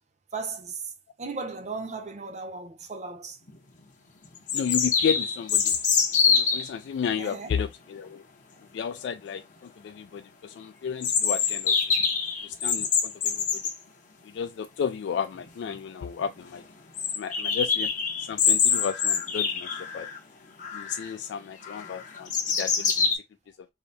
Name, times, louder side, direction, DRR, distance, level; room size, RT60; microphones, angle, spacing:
voice 1, 0.3-0.9 1.2-3.4 7.2-7.5, right 4 dB, 40° right, 0.8 m, -36 dB
sound 1, 3.5-3.6 4.5-6.7 11.0-13.8 15.4-15.5 15.7-15.8 16.2-16.3 17.0-20.2 20.6-21.1 21.6-23.1, left 6 dB, 45° left, 1.0 m, -25 dB
voice 2, 4.5-5.8 6.3-8.2 8.7-11.8 12.4-13.6 14.2-16.6 17.2-17.9 18.2-20.1 20.7-23.1, left 7 dB, 75° left, 0.3 m, -33 dB
4.9 x 2.1 x 4.1 m
head